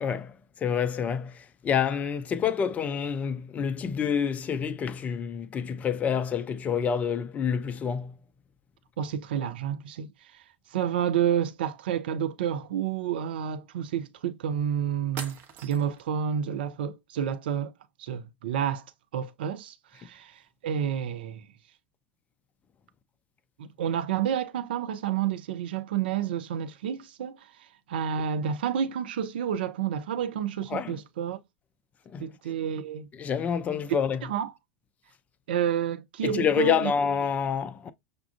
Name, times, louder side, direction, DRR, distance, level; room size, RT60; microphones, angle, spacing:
voice 1, 0.0-8.1 30.7-31.0 32.1-32.3 33.1-34.2 36.2-37.9, left 7 dB, 25° left, 0.4 m, -28 dB
voice 2, 9.0-10.4 10.7-15.4 15.6-17.7 18.0-18.8 19.1-21.5 23.6-31.4 32.2-33.1 34.2-34.5 35.5-36.9, right 8 dB, 60° right, 0.5 m, -30 dB
sound 1, 14.6-14.7 15.2-16.1, right 6 dB, 40° right, 0.8 m, -41 dB
6.5 x 2.3 x 2.4 m
figure-of-eight pair, 85°, 6 cm